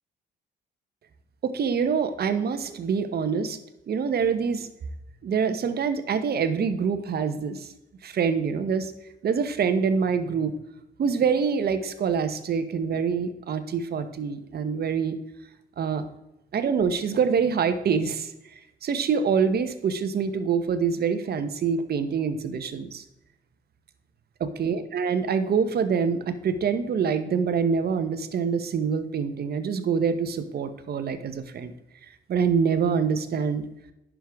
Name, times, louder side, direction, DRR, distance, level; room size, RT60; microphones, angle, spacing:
voice 1, 1.4-3.6 3.9-4.7 5.2-7.7 8.0-8.9 9.2-10.5 11.0-15.2 15.8-16.0 16.5-18.3 18.8-23.0 24.4-31.7 32.3-33.6, right 6 dB, 55° right, 10 dB, 0.9 m, -25 dB
10.0 x 6.2 x 3.5 m, 0.91 s
cardioid pair, 90°, 20 cm